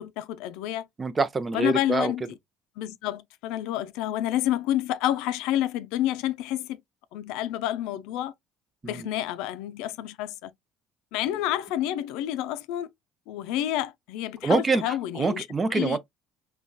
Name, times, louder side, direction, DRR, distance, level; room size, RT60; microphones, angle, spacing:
voice 1, 0.0-0.9 1.5-2.2 2.8-6.8 7.1-8.3 8.8-10.5 11.1-12.9 13.3-16.0, left 12 dB, 80° left, 0.4 m, -29 dB
voice 2, 1.0-2.1 8.8-9.1 14.4-16.0, right 4 dB, 25° right, 0.5 m, -25 dB
3.8 x 2.2 x 2.2 m
supercardioid pair, 95°, 0 cm